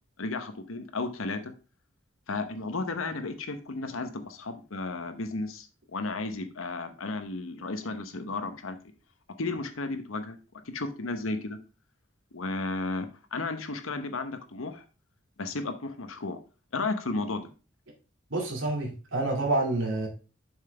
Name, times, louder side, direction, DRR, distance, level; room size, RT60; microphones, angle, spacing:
voice 1, 0.2-1.5 2.3-8.8 9.4-10.4 10.7-11.6 12.3-14.8 15.4-16.4 16.7-17.5, left 3 dB, 90° left, 9 dB, 1.0 m, -33 dB
voice 2, 18.3-20.1, right 2 dB, 75° right, 0 dB, 2.4 m, -28 dB
7.3 x 5.7 x 3.3 m, 0.33 s
head